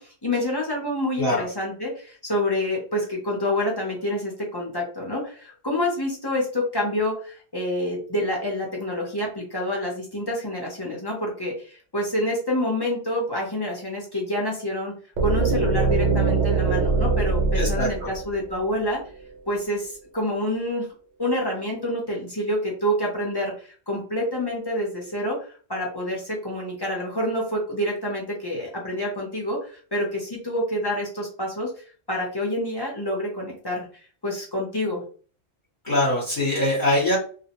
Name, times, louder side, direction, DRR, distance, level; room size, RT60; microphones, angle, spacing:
voice 1, 0.0-14.9 15.2-19.0 19.5-20.9 21.2-33.9 34.2-35.0, left 1 dB, 30° left, -2 dB, 0.5 m, -27 dB
sound 1, 15.2-19.1, right 4 dB, 85° right, 0.9 m, -23 dB
voice 2, 17.5-18.1 35.8-37.2, left 1 dB, 45° left, -5 dB, 1.0 m, -23 dB
2.4 x 2.0 x 2.9 m, 0.41 s
omnidirectional pair, 1.2 m